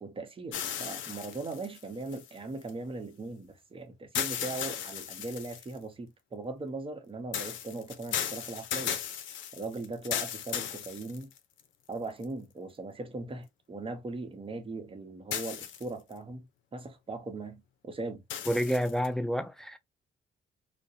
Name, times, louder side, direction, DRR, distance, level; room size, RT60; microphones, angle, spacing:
voice 1, 0.0-9.0 9.5-11.3 11.9-16.5 16.7-18.2, right 3 dB, 25° right, 0.7 m, -39 dB
sound 1, 0.5-2.7 4.1-5.8 7.3-11.6 12.2-12.3 15.3-16.1 18.3-19.1, left 9 dB, 75° left, 0.5 m, -36 dB
voice 2, 18.5-19.8, equal, ahead, 0.3 m, -29 dB
2.4 x 2.1 x 2.6 m
cardioid pair, 90°, 20 cm